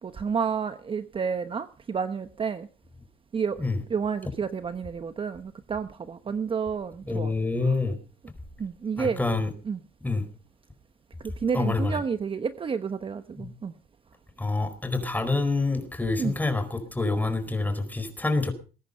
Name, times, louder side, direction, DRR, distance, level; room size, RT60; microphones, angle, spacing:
voice 1, 0.0-2.7 3.3-3.6 3.9-7.3 7.6-7.8 8.6-9.2 9.6-9.8 11.2-13.7 16.2-16.3, right 6 dB, 30° right, 1.0 m, -30 dB
voice 2, 7.1-8.0 9.0-9.5 10.0-10.2 11.5-12.0 13.4-13.5 14.4-18.5, left 3 dB, 10° left, 4.5 m, -27 dB
21.0 x 10.5 x 5.4 m
cardioid pair, 110°, 17 cm